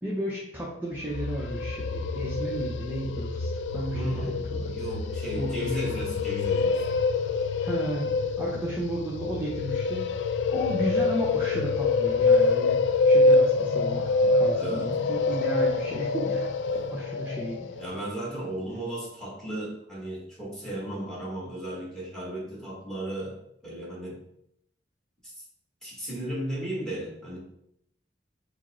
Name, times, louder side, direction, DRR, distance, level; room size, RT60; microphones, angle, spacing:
voice 1, 0.0-4.7 5.4-6.0 7.6-8.1 8.4-10.2 10.5-17.7, equal, 10° right, -5 dB, 0.6 m, -34 dB
sound 1, 1.0-18.0, left 3 dB, 75° left, 0.3 m, -26 dB
voice 2, 3.9-6.9 14.5-14.9 17.8-23.4 23.6-24.2 25.2-25.4 25.8-27.4, right 1 dB, 5° left, -5 dB, 1.3 m, -35 dB
4.8 x 2.1 x 4.2 m, 0.76 s
head